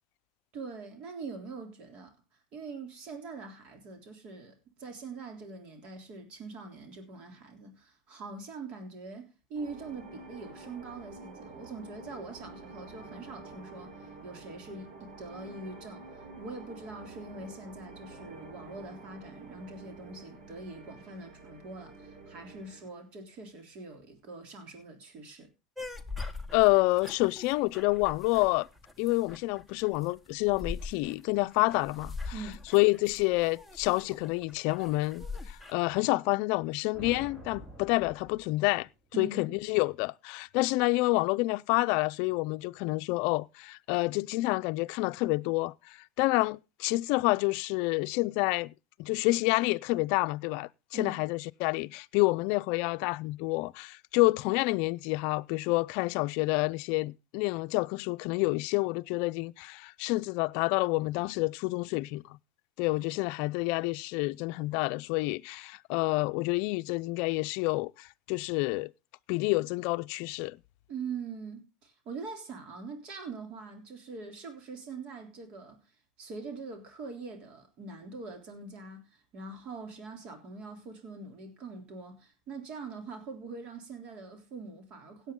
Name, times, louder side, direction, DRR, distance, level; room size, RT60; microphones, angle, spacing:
voice 1, 0.5-2.1 2.5-25.5 32.3-32.7 39.1-39.6 50.9-51.2 70.9-75.8 76.2-85.3, right 4 dB, 45° right, 3.4 m, -43 dB
sound 1, 9.5-22.9, right 3 dB, 60° right, 6.8 m, -49 dB
sound 2, 25.8-35.7, left 3 dB, ahead, 1.3 m, -42 dB
voice 2, 26.5-28.7 29.0-32.3 32.7-38.9 39.2-48.7 49.0-62.4 62.8-68.9 69.3-70.6, left 22 dB, 60° left, 0.5 m, -28 dB
sound 3, 36.9-39.1, equal, 25° right, 5.4 m, -47 dB
17.0 x 8.4 x 3.8 m
supercardioid pair, 145°, 3 cm